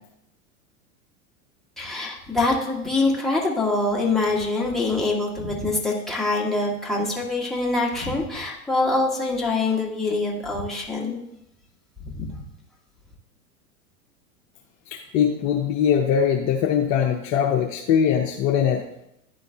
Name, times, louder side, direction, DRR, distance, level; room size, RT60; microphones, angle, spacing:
voice 1, 1.8-11.2 12.1-12.4, left 2 dB, ahead, -5 dB, 1.8 m, -24 dB
voice 2, 14.9-18.8, left 8 dB, 40° left, 1 dB, 0.8 m, -21 dB
10.5 x 3.9 x 3.5 m, 0.80 s
hypercardioid pair, 90°, 45 cm